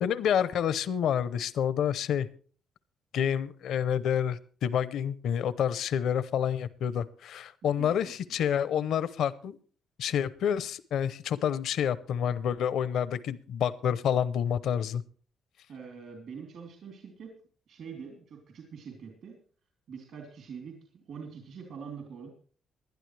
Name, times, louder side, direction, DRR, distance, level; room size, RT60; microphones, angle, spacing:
voice 1, 0.0-2.3 3.1-9.6 10.0-15.0, left 8 dB, 75° left, 16 dB, 0.7 m, -28 dB
voice 2, 7.6-8.2 15.7-17.4 17.7-19.4 19.9-22.3, right 6 dB, 70° right, 2 dB, 3.3 m, -44 dB
20.0 x 11.5 x 3.3 m, 0.41 s
cardioid pair, 90°, 0 cm